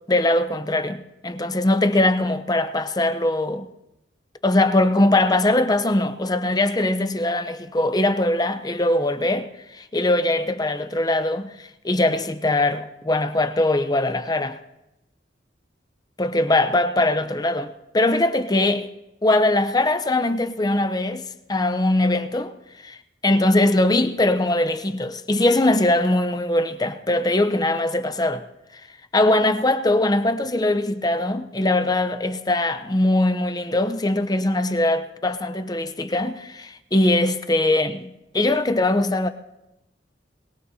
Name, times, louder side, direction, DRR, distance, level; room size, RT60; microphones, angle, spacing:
voice 1, 0.1-3.7 4.4-14.6 16.2-18.9 19.2-21.2 21.5-22.5 22.8-23.0 23.2-28.4 29.1-39.3, left 1 dB, 20° left, 0.7 m, -21 dB
22.0 x 21.0 x 2.8 m
head